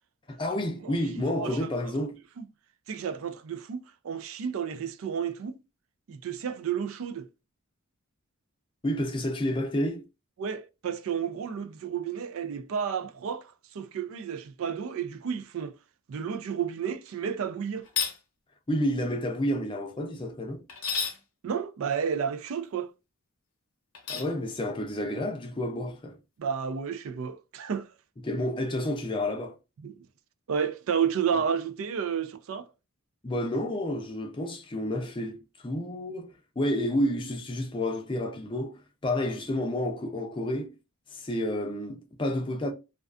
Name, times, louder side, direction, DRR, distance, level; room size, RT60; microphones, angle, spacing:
voice 1, 0.3-2.2 8.8-10.0 18.7-20.6 24.1-26.2 28.2-29.6 33.2-40.7 41.1-42.7, left 1 dB, 25° left, 0.5 m, -30 dB
voice 2, 0.8-1.7 2.4-2.5 2.9-5.6 6.1-7.3 10.4-15.8 16.1-17.9 21.4-22.9 26.4-27.9 29.8-30.0 30.5-32.7, right 7 dB, 75° right, 0.4 m, -31 dB
sound 1, 17.8-18.2 20.7-21.2 23.9-24.3, left 6 dB, 80° left, 0.7 m, -30 dB
2.4 x 2.3 x 2.3 m
head